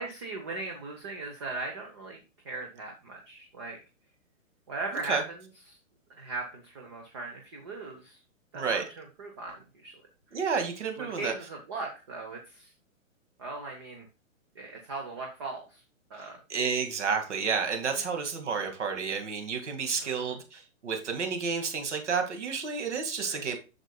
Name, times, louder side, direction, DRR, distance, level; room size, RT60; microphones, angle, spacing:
voice 1, 0.0-2.2 2.4-3.8 4.7-5.8 6.2-8.2 8.5-10.0 10.3-10.4 11.0-12.7 13.4-14.0 14.5-15.8 16.1-16.4 18.0-18.1 20.0-20.4 23.2-23.5, right 3 dB, 20° right, 2 dB, 0.8 m, -39 dB
voice 2, 8.5-8.9 10.3-11.3 16.2-23.6, right 5 dB, 60° right, 5 dB, 2.1 m, -31 dB
8.8 x 6.6 x 2.3 m, 0.30 s
hypercardioid pair, 170°, 41 cm